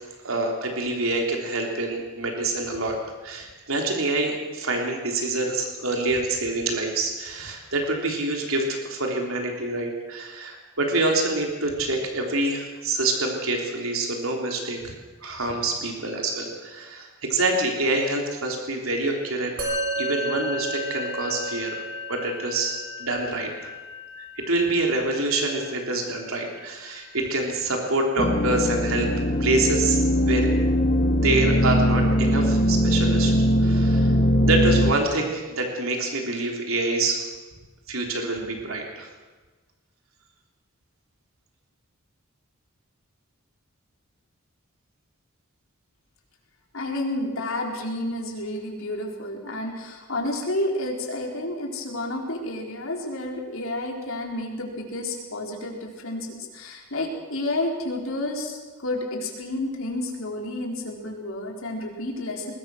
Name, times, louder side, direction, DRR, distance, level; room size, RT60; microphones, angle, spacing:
voice 1, 0.2-14.9 15.2-19.5 20.0-21.8 22.1-23.5 24.5-29.1 29.4-30.5 31.2-33.3 33.6-34.1 34.4-37.2 37.9-39.1, right 2 dB, 75° right, 1 dB, 3.5 m, -26 dB
Musical instrument, 19.6-29.1, equal, 45° right, 5.3 m, -34 dB
sound 1, 28.2-34.9, equal, 35° left, 2.1 m, -21 dB
voice 2, 46.7-62.5, left 1 dB, 70° left, 1 dB, 4.2 m, -30 dB
22.0 x 20.5 x 6.4 m, 1.3 s
head